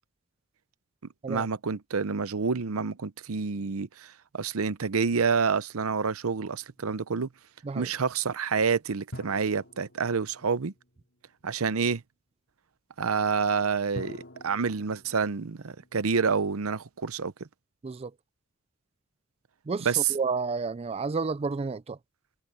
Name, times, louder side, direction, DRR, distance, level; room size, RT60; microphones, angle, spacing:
voice 1, 1.3-7.3 7.7-10.7 11.4-12.0 13.0-17.3 19.8-20.1, right 5 dB, 90° right, 0.7 m, -28 dB
sound 1, 6.4-7.4 9.1-11.5 14.0-17.0, equal, 60° left, 3.7 m, -48 dB
voice 2, 19.7-22.0, right 4 dB, 30° right, 0.4 m, -31 dB
head